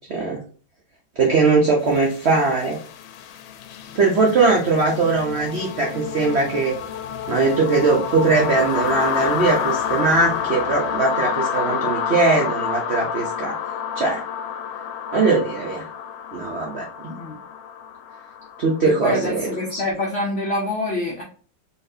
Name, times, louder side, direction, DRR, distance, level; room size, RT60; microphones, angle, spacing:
voice 1, 0.1-0.4 1.2-2.8 4.0-6.7 7.3-13.6 14.0-14.2 15.1-15.9 16.3-17.1 18.6-19.8, right 3 dB, 65° right, -1 dB, 0.6 m, -20 dB
sound 1, 1.9-19.7, left 8 dB, 80° left, 1.3 m, -29 dB
voice 2, 18.8-21.2, left 2 dB, 55° left, -2 dB, 0.7 m, -26 dB
4.1 x 3.1 x 2.6 m, 0.42 s
omnidirectional pair, 2.1 m